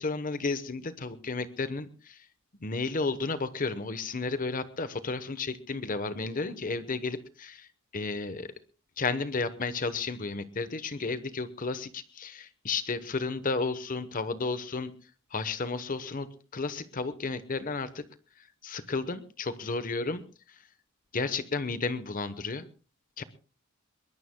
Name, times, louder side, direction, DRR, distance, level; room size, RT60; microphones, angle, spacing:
voice 1, 0.0-2.2 2.6-7.7 7.9-8.5 9.0-14.9 15.3-16.3 16.5-18.0 18.6-20.2 21.1-22.6 23.2-23.3, left 3 dB, 40° left, 12 dB, 0.9 m, -32 dB
22.5 x 21.0 x 2.2 m, 0.35 s
head